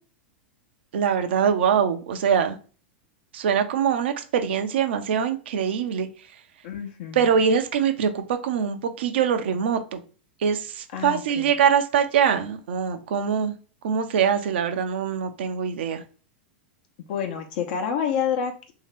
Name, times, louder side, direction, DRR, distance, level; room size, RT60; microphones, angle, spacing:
voice 1, 0.9-2.6 3.3-6.1 7.1-10.0 10.4-13.5 13.8-16.0, right 7 dB, 70° right, 8 dB, 0.6 m, -23 dB
voice 2, 6.6-7.2 10.9-11.5 17.1-18.7, left 7 dB, 60° left, 4 dB, 0.8 m, -28 dB
2.8 x 2.8 x 3.3 m, 0.37 s
hypercardioid pair, 105°, 6 cm